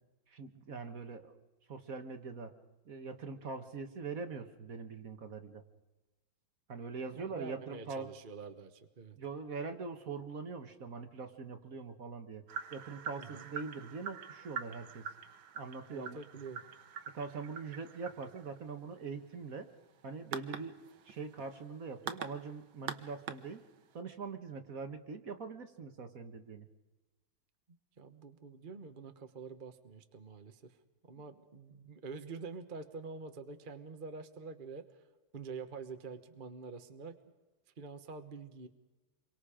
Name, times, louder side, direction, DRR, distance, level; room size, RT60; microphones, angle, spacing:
voice 1, 0.3-1.3 1.7-2.5 2.9-5.6 6.7-8.1 9.2-12.4 12.7-15.0 15.5-16.2 17.1-19.7 20.0-23.6 23.9-26.7, right 4 dB, 45° right, 7 dB, 1.6 m, -43 dB
voice 2, 7.1-9.2 13.2-13.4 15.9-16.6 28.0-30.7 31.1-34.8 35.3-37.1 37.8-38.7, right 4 dB, 30° right, 7 dB, 1.1 m, -46 dB
sound 1, 12.5-24.0, right 7 dB, 75° right, 1.9 m, -45 dB
28.0 x 24.0 x 5.0 m, 1.1 s
omnidirectional pair, 2.2 m